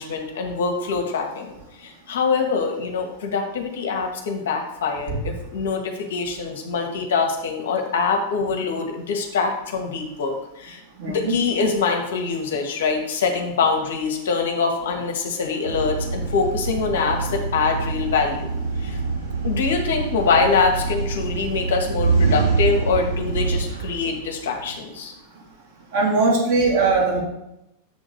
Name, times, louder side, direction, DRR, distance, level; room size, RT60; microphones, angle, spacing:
voice 1, 0.0-1.5 1.8-10.8 11.1-18.5 18.8-19.0 19.4-25.1, left 5 dB, 60° left, 3 dB, 1.3 m, -24 dB
voice 2, 11.0-11.4 25.9-27.2, right 3 dB, 55° right, -4 dB, 2.3 m, -20 dB
Motor Bike Courtyard, 15.6-24.7, right 4 dB, 80° right, 3.2 m, -25 dB
7.0 x 3.9 x 6.5 m, 0.86 s
figure-of-eight pair, 90°, 0 cm